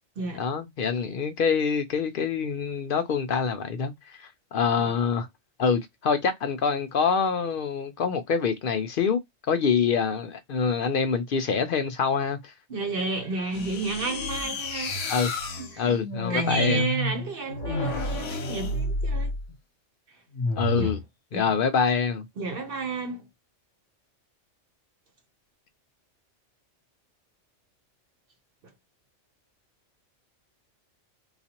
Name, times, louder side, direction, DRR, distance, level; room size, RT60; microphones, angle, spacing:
voice 1, 0.3-5.3 5.6-9.2 9.5-12.5 15.1-15.3 15.8-16.9 20.6-21.0 21.3-22.2, left 6 dB, 60° left, 0.6 m, -25 dB
voice 2, 12.7-15.9 16.3-19.3 20.7-20.9 21.3-21.5 22.4-23.3, right 3 dB, 50° right, 0.9 m, -32 dB
sound 1, 13.5-19.5 20.3-21.0, left 1 dB, 75° left, 1.1 m, -30 dB
3.9 x 2.4 x 2.8 m
omnidirectional pair, 1.3 m